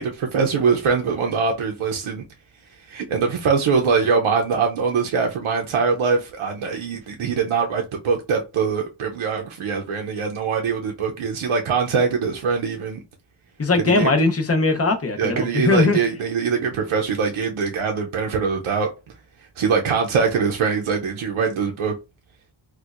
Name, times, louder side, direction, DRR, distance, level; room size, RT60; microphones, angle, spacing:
voice 1, 0.0-2.2 2.9-13.0 13.7-14.1 15.2-18.9 19.6-21.9, right 5 dB, 85° right, 0.6 m, -22 dB
voice 2, 13.6-16.0, left 3 dB, 30° left, 0.7 m, -19 dB
4.3 x 2.2 x 2.4 m
wide cardioid pair, 95°, 48 cm